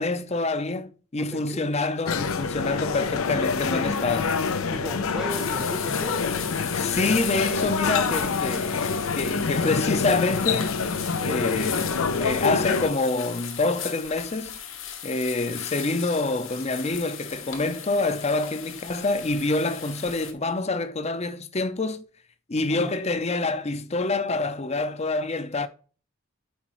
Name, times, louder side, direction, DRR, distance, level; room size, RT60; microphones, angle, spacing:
voice 1, 0.0-4.4 6.8-10.8 11.2-14.6 15.0-22.0 22.5-25.7, left 3 dB, 30° left, 0.6 m, -27 dB
voice 2, 1.1-2.2 4.7-6.3 11.6-11.8 22.7-23.0, equal, ahead, 0.7 m, -37 dB
sound 1, 2.1-12.9, left 5 dB, 90° left, 0.7 m, -26 dB
sound 2, 5.3-20.3, left 9 dB, 70° left, 1.2 m, -37 dB
11.5 x 4.6 x 3.1 m
head